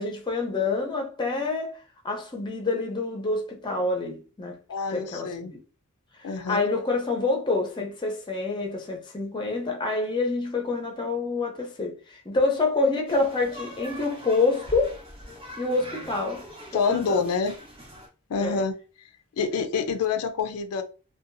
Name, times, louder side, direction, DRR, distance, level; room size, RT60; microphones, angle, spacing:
voice 1, 0.0-4.6 4.9-5.6 6.2-15.0 15.6-16.5 16.7-17.2 18.4-18.6, left 3 dB, 20° left, 0.5 m, -27 dB
voice 2, 4.7-5.5 6.2-6.6 16.7-17.6 18.3-18.7 19.4-20.8, left 5 dB, 80° left, 0.4 m, -27 dB
sound 1, 13.1-18.1, equal, 25° right, 0.6 m, -42 dB
2.7 x 2.2 x 2.5 m
head